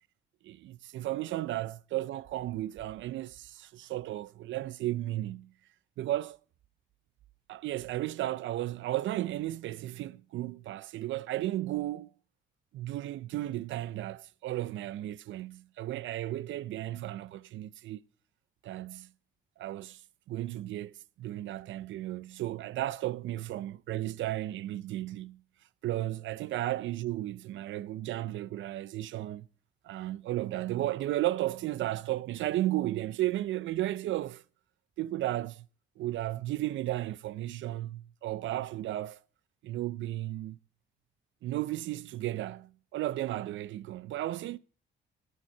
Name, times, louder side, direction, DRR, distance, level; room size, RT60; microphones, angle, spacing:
voice 1, 0.4-5.5 6.0-6.4 7.5-12.1 12.7-18.0 18.6-19.1 19.6-20.0 20.3-25.4 25.8-29.5 29.8-34.4 35.0-35.7 36.0-39.2 39.6-40.6 41.4-44.6, right 15 dB, 75° right, 0.5 m, -34 dB
18.0 x 6.4 x 4.3 m
cardioid pair, 90°, 20 cm